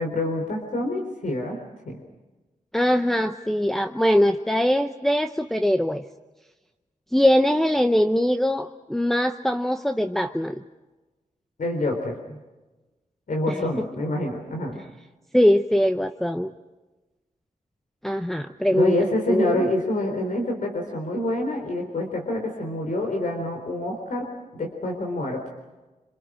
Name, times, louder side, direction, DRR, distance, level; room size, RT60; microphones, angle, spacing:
voice 1, 0.0-1.6 1.9-2.0 11.6-12.4 13.3-14.8 18.7-24.3 24.5-25.4, left 1 dB, 70° left, 3 dB, 3.9 m, -27 dB
voice 2, 2.7-6.0 7.1-10.6 13.5-13.9 15.3-16.5 18.0-19.0 19.3-19.7, equal, ahead, 7 dB, 0.7 m, -22 dB
27.0 x 26.5 x 6.2 m, 1.1 s
wide cardioid pair, 145°, 14 cm